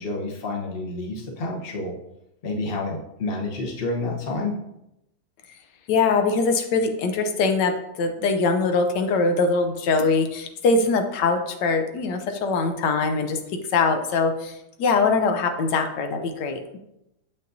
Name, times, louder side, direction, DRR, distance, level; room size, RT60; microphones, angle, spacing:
voice 1, 0.0-1.9 2.4-4.6, left 2 dB, 40° left, -1 dB, 1.1 m, -29 dB
voice 2, 5.9-13.4 13.7-16.6, left 4 dB, 85° left, 5 dB, 1.3 m, -22 dB
7.3 x 5.6 x 2.6 m, 0.85 s
omnidirectional pair, 1.8 m